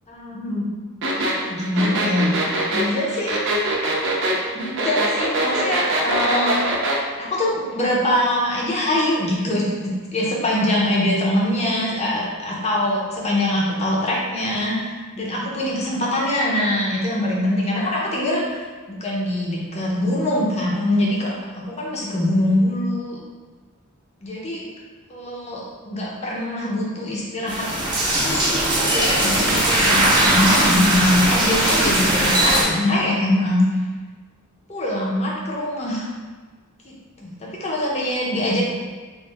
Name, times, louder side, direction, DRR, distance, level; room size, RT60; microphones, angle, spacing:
voice 1, 0.1-0.7 1.5-2.4 2.7-3.4 4.5-6.9 7.2-18.6 18.9-23.2 24.2-24.6 25.1-33.6 34.7-36.1 36.8-36.9 37.2-37.3 37.6-38.6, left 1 dB, 30° left, -4 dB, 0.7 m, -23 dB
sound 1, 1.0-7.0, right 2 dB, 60° right, 0.5 m, -23 dB
sound 2, 27.5-32.6, right 1 dB, 20° right, 0.7 m, -19 dB
3.0 x 2.6 x 3.3 m, 1.4 s
head